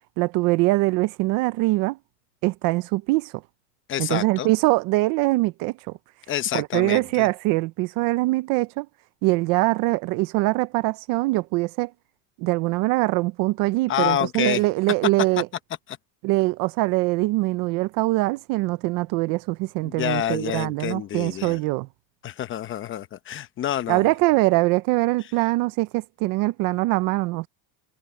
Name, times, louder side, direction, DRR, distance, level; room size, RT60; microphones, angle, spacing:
voice 1, 0.2-2.0 2.4-3.3 4.0-5.8 6.5-8.9 9.2-11.9 12.4-15.5 16.2-21.9 23.9-27.5, right 21 dB, 45° right, 0.6 m, -23 dB
voice 2, 3.9-4.5 6.3-7.3 13.9-14.6 19.8-21.6 22.2-24.1, left 11 dB, 25° left, 0.8 m, -28 dB
cardioid pair, 170°, 48 cm